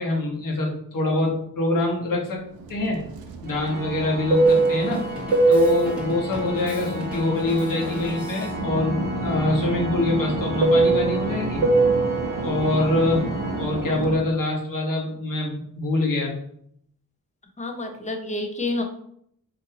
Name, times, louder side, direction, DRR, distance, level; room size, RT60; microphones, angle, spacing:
voice 1, 0.0-3.0 3.4-5.0 5.5-11.6 12.4-13.3 13.6-16.3, left 2 dB, 60° left, -2 dB, 1.2 m, -25 dB
Fixed-wing aircraft airplane, 2.7-8.1 8.4-14.3, right 3 dB, 80° right, 0.6 m, -23 dB
Organ, 3.5-14.4, left 1 dB, 25° right, 0.9 m, -34 dB
Drum kit, 4.4-8.6, equal, 5° right, 1.1 m, -38 dB
voice 2, 17.6-18.8, left 2 dB, 20° left, 4 dB, 0.6 m, -28 dB
4.0 x 2.6 x 2.7 m, 0.68 s
cardioid pair, 70°, 36 cm